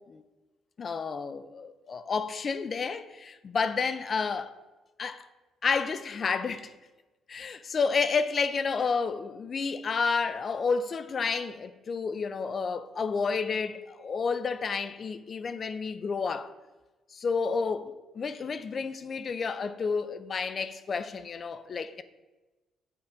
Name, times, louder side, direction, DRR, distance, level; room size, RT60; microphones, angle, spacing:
voice 1, 0.8-4.5 5.0-5.3 5.6-6.7 7.3-16.5 17.1-22.0, left 5 dB, 45° left, 0.4 m, -30 dB
6.5 x 3.7 x 5.6 m
cardioid pair, 90°, 0 cm